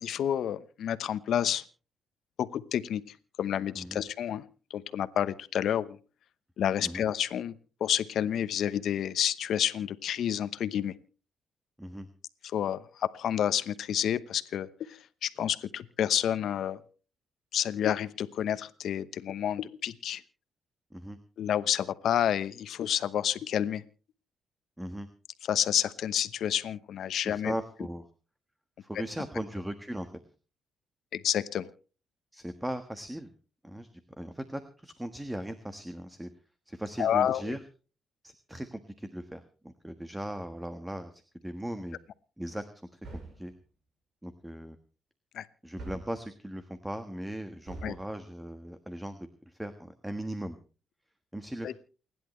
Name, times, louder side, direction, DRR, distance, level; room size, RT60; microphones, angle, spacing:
voice 1, 0.0-1.6 2.4-3.0 3.4-4.4 4.7-6.0 6.6-7.5 7.8-10.9 12.4-16.8 17.5-20.2 21.4-23.8 25.5-27.5 31.1-31.7 37.0-37.5 45.3-45.5 47.8-47.9 51.6-51.7, left 10 dB, 70° left, 13 dB, 0.9 m, -29 dB
voice 2, 24.8-25.1 27.2-28.0 28.8-30.1 32.3-33.3 33.6-33.9 34.2-36.3 36.7-37.6 38.2-42.0 42.4-42.6 42.9-43.0 43.4-43.5 44.2-44.8 45.6-50.6 51.3-51.7, right 1 dB, 5° right, 9 dB, 1.3 m, -38 dB
sound 1, 43.0-43.6 45.8-46.3 47.6-48.1, right 2 dB, 65° right, 6.8 m, -43 dB
29.0 x 11.0 x 3.2 m, 0.36 s
cardioid pair, 90°, 0 cm